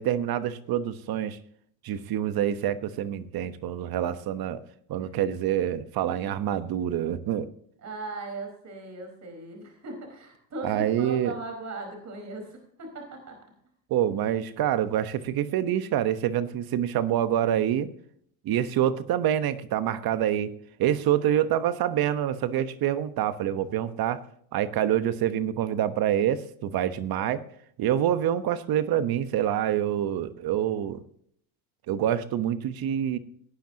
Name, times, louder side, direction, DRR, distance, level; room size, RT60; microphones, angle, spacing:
voice 1, 0.0-1.4 1.8-4.6 4.9-7.5 10.6-11.3 13.9-17.9 18.4-20.5 20.8-24.2 24.5-27.4 27.8-31.0 31.9-33.2, right 10 dB, 55° right, 12 dB, 1.2 m, -26 dB
voice 2, 7.8-13.4, right 2 dB, 40° right, 4 dB, 4.7 m, -38 dB
18.0 x 10.5 x 2.9 m, 0.63 s
supercardioid pair, 105°, 44 cm